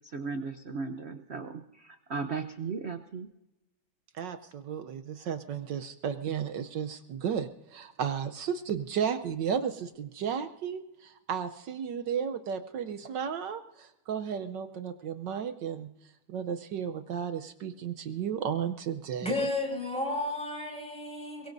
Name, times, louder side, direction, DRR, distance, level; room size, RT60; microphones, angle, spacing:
voice 1, 0.0-3.3, right 5 dB, 80° right, 8 dB, 0.5 m, -36 dB
voice 2, 4.1-19.3, right 7 dB, 65° right, 9 dB, 1.3 m, -34 dB
voice 3, 19.2-21.5, left 2 dB, 5° left, 0 dB, 5.6 m, -32 dB
23.0 x 22.5 x 2.6 m, 0.91 s
omnidirectional pair, 2.3 m